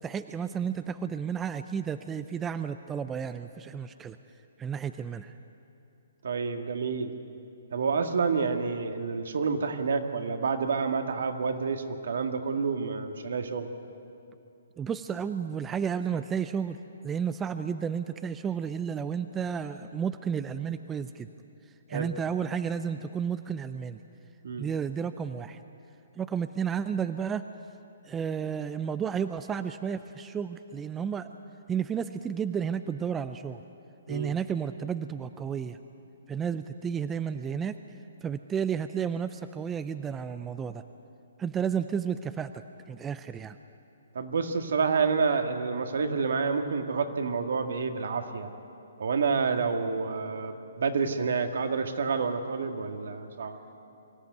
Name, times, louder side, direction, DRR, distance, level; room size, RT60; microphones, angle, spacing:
voice 1, 0.0-4.2 4.6-5.3 14.8-16.8 17.0-21.3 21.9-24.0 24.6-25.6 26.2-27.4 28.1-31.3 31.7-33.6 34.1-35.8 36.3-37.8 38.2-40.8 41.4-42.6 42.9-43.6, right 7 dB, 15° right, 11 dB, 0.5 m, -32 dB
voice 2, 6.2-7.1 7.7-13.7 21.9-22.1 24.4-24.7 34.1-34.3 44.1-48.5 49.0-53.6, right 5 dB, 70° right, 6 dB, 1.8 m, -29 dB
23.5 x 14.0 x 9.3 m, 2.7 s
hypercardioid pair, 155°, 0 cm